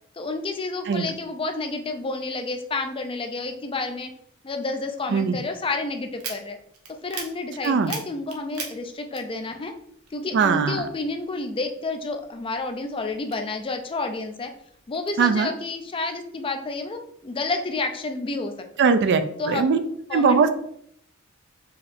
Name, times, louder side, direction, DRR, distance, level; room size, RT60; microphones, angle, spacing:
voice 1, 0.2-4.1 4.4-6.6 7.0-9.7 10.1-14.5 14.9-18.5 19.4-19.6 20.1-20.5, left 3 dB, 25° left, 6 dB, 0.4 m, -30 dB
sound 1, 6.1-9.8 10.1-11.4 11.8-13.9 14.4-15.1, right 5 dB, 85° right, 0.8 m, -39 dB
voice 2, 10.3-10.9 15.2-15.5 18.8-19.8 20.1-20.5, right 5 dB, 55° right, 10 dB, 0.4 m, -20 dB
4.6 x 2.7 x 3.4 m, 0.67 s
head